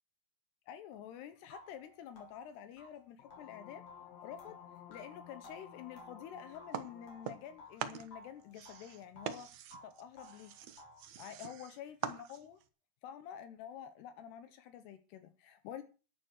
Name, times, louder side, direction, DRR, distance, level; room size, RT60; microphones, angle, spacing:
voice 1, 0.7-3.9 4.2-4.6 4.9-9.5 9.8-10.5 11.2-12.6 13.0-15.8, left 9 dB, 80° left, 3.1 m, -49 dB
sound 1, 0.9-1.0 1.5-7.8 8.1-9.4 9.7-11.1, left 1 dB, 40° left, 4.5 m, -57 dB
sound 2, 3.2-7.7, left 8 dB, 55° left, 2.1 m, -54 dB
sound 3, 6.7-7.5 7.8-12.7, right 9 dB, 85° right, 1.5 m, -44 dB
12.0 x 10.5 x 6.4 m
omnidirectional pair, 4.9 m